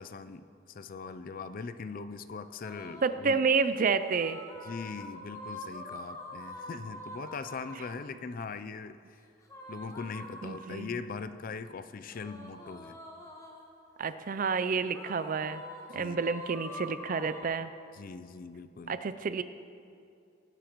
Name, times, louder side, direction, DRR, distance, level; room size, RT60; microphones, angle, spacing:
voice 1, 0.0-3.4 4.6-9.2 9.7-13.0 15.9-16.2 17.9-19.0, left 4 dB, 40° left, 12 dB, 0.4 m, -41 dB
sound 1, 2.6-3.3 3.9-8.1 9.4-11.0 12.1-13.8 14.9-17.4, left 1 dB, 15° left, 1.0 m, -45 dB
voice 2, 3.0-4.4 10.4-10.9 14.0-15.6 15.9-17.7 18.9-19.4, right 5 dB, 40° right, 12 dB, 0.4 m, -29 dB
19.5 x 11.5 x 3.0 m, 2.4 s
head